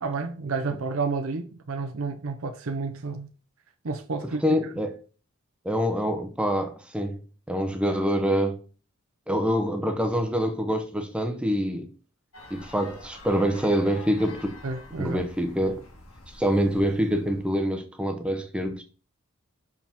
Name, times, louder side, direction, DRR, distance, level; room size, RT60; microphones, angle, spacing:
voice 1, 0.0-3.3 3.8-4.4 14.6-15.2, right 4 dB, 70° right, 0.7 m, -30 dB
voice 2, 4.4-4.9 5.6-7.2 7.5-8.6 9.3-11.9 12.5-14.6 15.0-15.8 16.3-18.8, equal, 5° right, 0.7 m, -25 dB
sound 1, 12.3-17.6, left 2 dB, 75° left, 1.7 m, -47 dB
5.8 x 4.7 x 3.5 m
head